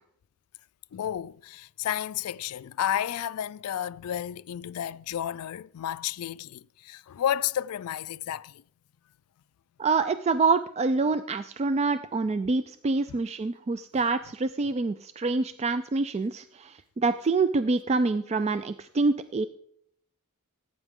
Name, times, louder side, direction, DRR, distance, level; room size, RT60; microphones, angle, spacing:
voice 1, 0.9-8.6 13.1-13.2, left 10 dB, 75° left, 0.4 m, -32 dB
voice 2, 9.8-19.5, right 3 dB, 30° right, 0.3 m, -26 dB
17.0 x 9.0 x 3.7 m
head